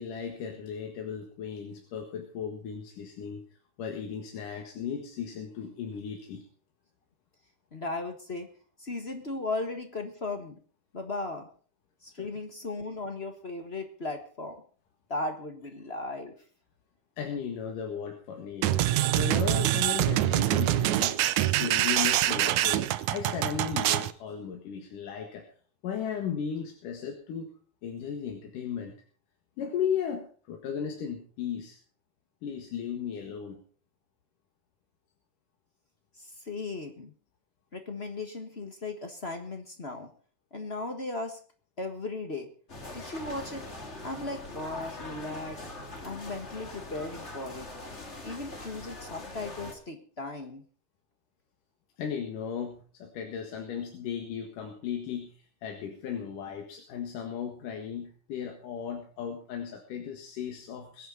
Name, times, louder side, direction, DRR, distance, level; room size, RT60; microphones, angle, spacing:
voice 1, 0.0-3.4 3.8-6.4 12.2-12.3 17.2-25.5 25.8-27.5 27.8-28.9 29.6-31.8 32.4-33.6 52.0-55.4 55.6-61.1, left 7 dB, 90° left, 2 dB, 3.3 m, -36 dB
voice 2, 7.7-8.5 8.8-10.5 10.9-11.5 12.0-14.6 15.1-16.3 36.2-37.1 37.7-40.1 40.5-41.4 41.8-42.5 42.9-43.6 44.0-45.6 46.0-47.7 48.2-50.6, left 2 dB, 40° left, 6 dB, 0.9 m, -36 dB
sound 1, 18.6-24.1, right 14 dB, 75° right, 2.0 m, -25 dB
sound 2, 42.7-49.7, left 2 dB, 25° left, 2.0 m, -42 dB
22.0 x 9.4 x 4.0 m, 0.40 s
omnidirectional pair, 3.6 m